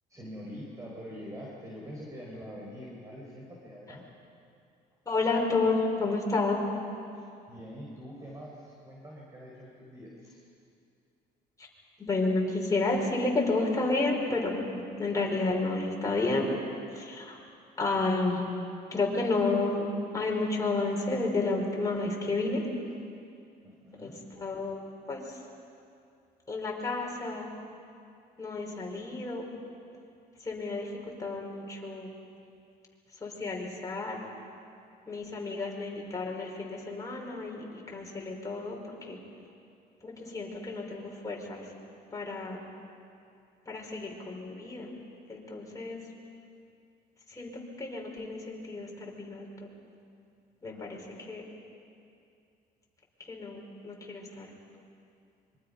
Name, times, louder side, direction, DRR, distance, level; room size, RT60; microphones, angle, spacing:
voice 1, 0.1-4.0 7.1-10.4 23.6-24.2 50.6-51.0, equal, 20° right, -4 dB, 4.7 m, -45 dB
voice 2, 5.0-6.6 11.6-11.7 12.0-14.5 15.0-16.5 16.9-17.4 17.8-18.5 18.9-19.9 20.1-22.6 24.0-24.8 25.1-25.4 26.5-27.5 28.4-29.5 30.4-32.1 33.1-34.2 35.1-39.2 40.0-41.7 42.1-42.6 43.6-44.9 45.3-46.1 47.3-49.7 50.6-51.4 53.2-54.5, left 3 dB, 20° left, -1 dB, 4.9 m, -31 dB
25.5 x 23.5 x 5.5 m, 2.5 s
cardioid pair, 110°, 17 cm